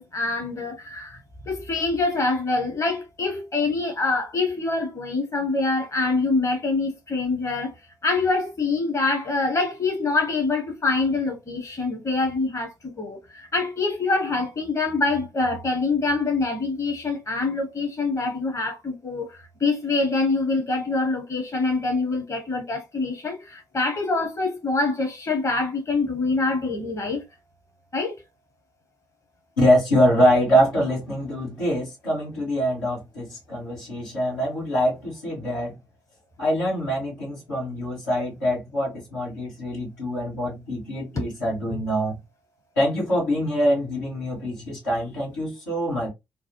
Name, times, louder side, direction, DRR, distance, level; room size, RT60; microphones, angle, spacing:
voice 1, 0.0-7.7 8.0-27.2 27.9-28.2 41.2-41.3, left 3 dB, 30° left, 0.9 m, -25 dB
voice 2, 29.6-35.8 36.4-42.2 42.7-46.1, equal, 80° left, 1.5 m, -24 dB
3.1 x 2.0 x 2.9 m
figure-of-eight pair, 45°, 10 cm